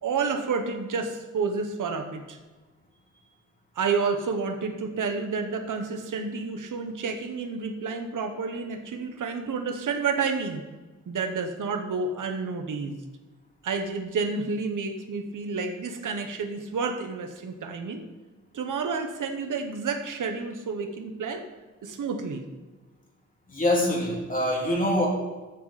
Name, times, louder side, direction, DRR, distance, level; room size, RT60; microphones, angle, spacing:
voice 1, 0.0-2.4 3.7-10.6 11.1-13.0 13.6-18.0 18.5-21.4 21.8-22.4, right 4 dB, 80° right, 6 dB, 1.4 m, -30 dB
voice 2, 23.5-25.1, left 1 dB, 25° left, -2 dB, 2.9 m, -24 dB
15.0 x 7.8 x 4.3 m, 1.2 s
wide cardioid pair, 135°, 30 cm